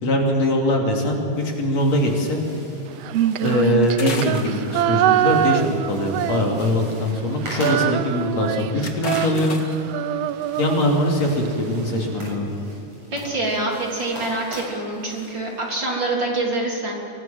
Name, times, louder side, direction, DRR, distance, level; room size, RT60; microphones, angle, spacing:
voice 1, 0.0-2.4 3.4-9.6 10.6-12.6, left 1 dB, 60° left, 0 dB, 4.0 m, -22 dB
sound 1, 1.1-15.9, equal, 55° right, 8.8 m, -41 dB
Female singing, 3.0-6.9 7.2-11.5, right 12 dB, 75° right, 1.5 m, -24 dB
sound 2, 3.5-5.3 6.7-7.1 7.5-7.6 7.8-7.9 8.4-9.9 10.9-11.1 11.6-12.0 12.4-12.7, left 3 dB, 40° left, 2.4 m, -36 dB
voice 2, 13.1-16.9, right 2 dB, 35° right, -2 dB, 4.0 m, -25 dB
25.0 x 18.5 x 7.7 m, 2.9 s
omnidirectional pair, 3.4 m